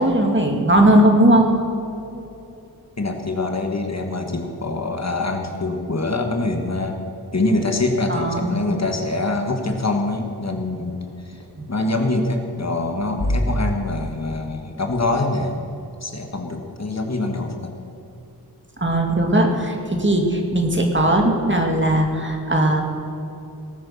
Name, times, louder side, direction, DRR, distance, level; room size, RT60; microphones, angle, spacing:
voice 1, 0.0-1.5 8.1-8.5 11.6-11.7 18.8-22.8, right 1 dB, 30° right, 2 dB, 2.3 m, -18 dB
voice 2, 3.0-7.0 7.3-11.4 11.7-15.6 16.0-17.7, left 2 dB, 45° left, 3 dB, 1.6 m, -24 dB
sound 1, 9.7-13.4, left 1 dB, 70° left, 2.5 m, -35 dB
18.5 x 9.0 x 7.1 m, 2.8 s
wide cardioid pair, 70°, 38 cm